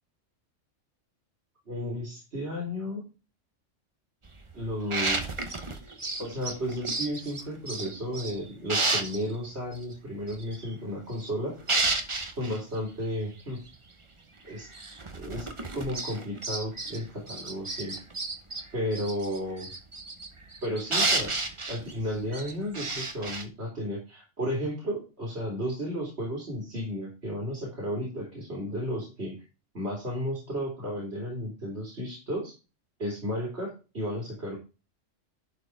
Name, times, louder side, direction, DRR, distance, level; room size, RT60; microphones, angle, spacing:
voice 1, 1.7-3.0 4.5-5.2 6.2-11.6 12.4-13.6 14.4-14.7 15.1-15.5 15.7-18.0 18.7-19.7 20.6-21.3 21.7-29.4 29.7-32.5 33.0-34.6, equal, 55° right, -3 dB, 3.5 m, -33 dB
sound 1, 4.2-8.4 8.7-9.3 9.7-9.8 10.3-11.3 11.6-12.6 13.4-13.5 13.7-13.8 14.5-17.0 17.3-23.4, right 3 dB, 25° right, 0.9 m, -32 dB
11.0 x 4.7 x 4.7 m, 0.31 s
omnidirectional pair, 1.3 m